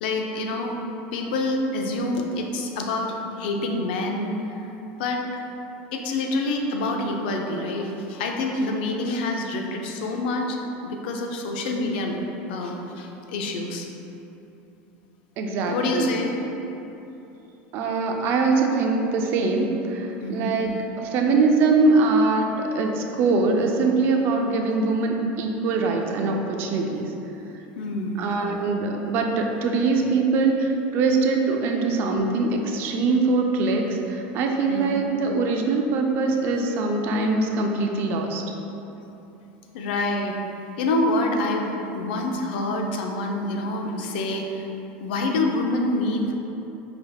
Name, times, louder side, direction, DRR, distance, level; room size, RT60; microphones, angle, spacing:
voice 1, 0.0-0.7 1.1-4.4 5.0-5.2 5.9-10.6 10.8-12.2 12.5-13.9 15.7-16.3 20.2-20.6 27.8-28.2 34.7-35.0 39.7-40.4 40.8-44.6 45.0-46.3, left 2 dB, 80° left, 2 dB, 0.5 m, -26 dB
voice 2, 15.4-16.1 17.7-20.7 21.1-27.0 28.2-38.4, right 3 dB, 45° right, 2 dB, 0.4 m, -22 dB
5.0 x 3.3 x 2.3 m, 3.0 s
supercardioid pair, 150°, 5 cm